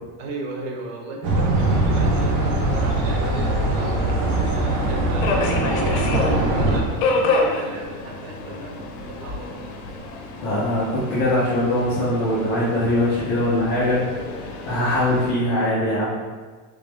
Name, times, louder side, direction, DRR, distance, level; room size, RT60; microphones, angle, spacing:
voice 1, 0.2-9.6, right 2 dB, 50° right, 0 dB, 0.7 m, -35 dB
sound 1, 1.2-6.8, right 2 dB, 85° right, 1.0 m, -21 dB
Subway metro underground, 1.6-15.3, left 3 dB, 65° left, 0.7 m, -30 dB
voice 2, 10.4-16.1, left 1 dB, 25° left, -9 dB, 0.3 m, -22 dB
3.4 x 3.3 x 3.1 m, 1.4 s
cardioid pair, 170°, 47 cm